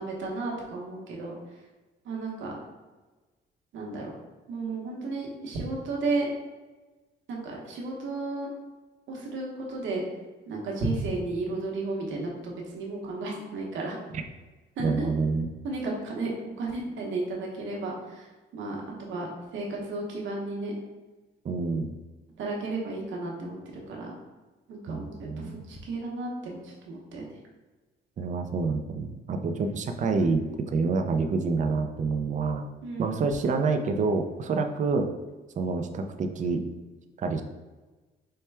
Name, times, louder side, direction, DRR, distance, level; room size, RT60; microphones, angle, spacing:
voice 1, 0.0-1.3 2.0-2.5 3.7-4.1 4.5-6.3 7.3-8.5 9.1-10.0 10.5-14.0 14.8-15.1 15.6-16.3 16.6-19.3 19.5-20.7 22.4-24.1 24.7-27.4 29.6-29.8 32.8-33.2, right 3 dB, 75° right, -1 dB, 1.0 m, -33 dB
voice 2, 14.8-15.5 21.4-21.9 24.9-25.6 28.2-32.6 33.0-35.1 35.6-36.6 37.2-37.4, right 4 dB, 40° right, 6 dB, 0.4 m, -27 dB
4.4 x 2.2 x 3.3 m, 1.2 s
cardioid pair, 90°, 20 cm